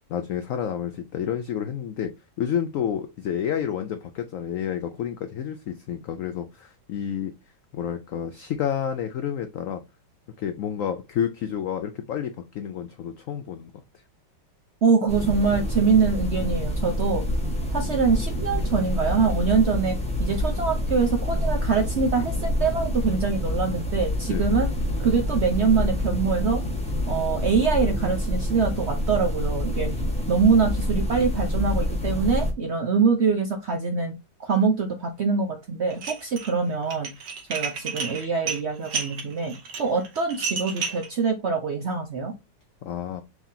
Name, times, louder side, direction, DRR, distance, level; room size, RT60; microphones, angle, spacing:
voice 1, 0.1-2.1 2.4-7.3 7.7-9.8 10.4-13.7 24.2-24.6 42.8-43.2, left 9 dB, 80° left, 8 dB, 0.7 m, -30 dB
voice 2, 14.8-17.2 17.7-19.9 20.2-24.7 25.0-26.6 27.1-29.9 30.3-34.1 34.4-37.1 37.5-42.3, right 5 dB, 60° right, 4 dB, 0.7 m, -24 dB
sound 1, 15.1-32.5, left 1 dB, 5° left, 0.9 m, -27 dB
Dishes pots and pans, 35.9-36.5 36.8-41.1, right 5 dB, 80° right, 1.8 m, -31 dB
4.6 x 3.7 x 2.7 m, 0.24 s
omnidirectional pair, 1.9 m